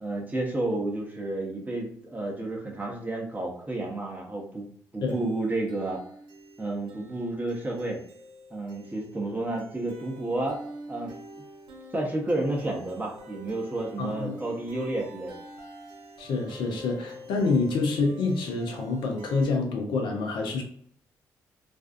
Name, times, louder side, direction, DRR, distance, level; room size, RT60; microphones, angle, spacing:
voice 1, 0.0-4.7 4.9-6.0 6.6-8.0 8.5-10.6 10.9-11.2 11.9-15.4, right 2 dB, 20° right, -1 dB, 0.8 m, -31 dB
sound 1, 5.1-19.4, right 1 dB, 65° right, 0.7 m, -47 dB
voice 2, 14.0-14.3 16.2-20.6, left 3 dB, 70° left, 3 dB, 0.6 m, -27 dB
2.5 x 2.3 x 2.4 m, 0.62 s
hypercardioid pair, 45°, 8 cm